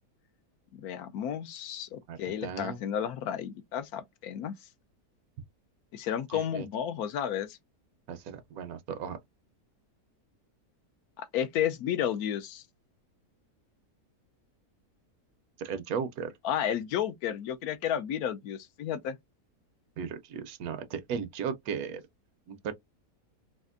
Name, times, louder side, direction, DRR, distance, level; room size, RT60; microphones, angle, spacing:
voice 1, 0.7-4.5 5.9-7.6 11.2-12.6 16.4-19.2, left 9 dB, 75° left, 1.1 m, -32 dB
voice 2, 2.1-2.8 6.3-6.7 8.1-9.2 15.6-16.3 20.0-22.0 22.5-22.7, right 7 dB, 75° right, 1.1 m, -36 dB
4.2 x 2.4 x 2.4 m
omnidirectional pair, 1.6 m